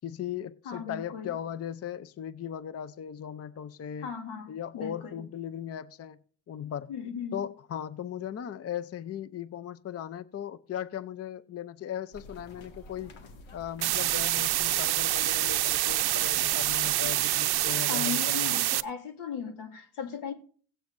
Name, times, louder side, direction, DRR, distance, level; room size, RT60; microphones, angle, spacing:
voice 1, 0.0-4.1 4.5-6.2 6.5-6.9 7.3-13.1 13.5-18.6, left 9 dB, 30° left, 0.5 m, -38 dB
voice 2, 0.7-1.3 4.0-5.2 6.9-7.4 17.9-20.3, left 7 dB, 85° left, 2.2 m, -37 dB
sound 1, 12.1-17.7, left 2 dB, 65° left, 2.0 m, -49 dB
sound 2, 13.8-18.8, right 15 dB, 50° right, 0.6 m, -26 dB
16.5 x 9.0 x 2.6 m
cardioid pair, 90°, 49 cm